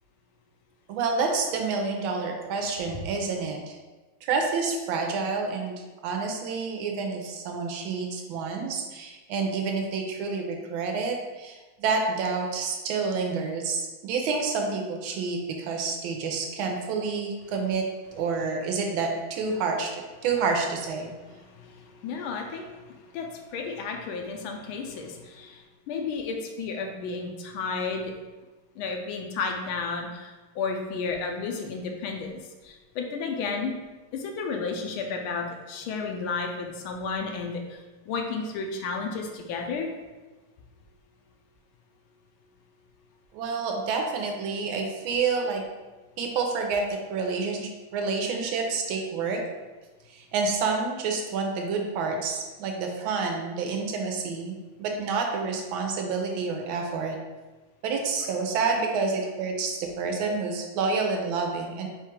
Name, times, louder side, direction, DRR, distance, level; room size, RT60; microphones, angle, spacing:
voice 1, 0.9-3.8 4.2-5.8 6.0-17.8 18.1-21.1 43.3-45.6 46.2-46.8 47.1-49.4 50.1-57.2 57.8-61.9, right 4 dB, 75° right, 2 dB, 1.4 m, -28 dB
voice 2, 21.0-28.1 28.8-32.3 32.6-33.7 34.1-37.8 38.1-39.9, left 4 dB, 80° left, 3 dB, 1.4 m, -32 dB
4.5 x 2.4 x 4.4 m, 1.2 s
omnidirectional pair, 2.3 m